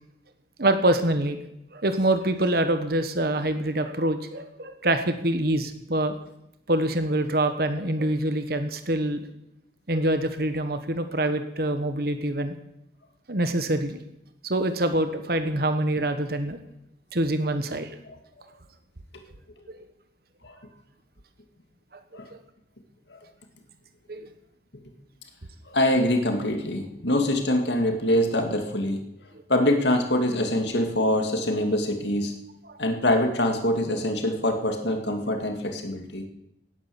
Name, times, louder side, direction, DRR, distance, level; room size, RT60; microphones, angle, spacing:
voice 1, 0.6-1.4 1.7-6.2 6.7-9.3 9.9-12.5 13.3-14.0 14.4-16.6 17.1-17.9 19.7-19.8 24.1-24.3 32.7-32.8, right 1 dB, 55° right, 9 dB, 1.2 m, -25 dB
voice 2, 25.7-29.0 29.5-32.3 32.8-36.3, left 1 dB, 70° left, 5 dB, 2.2 m, -24 dB
18.0 x 9.7 x 7.1 m, 0.83 s
head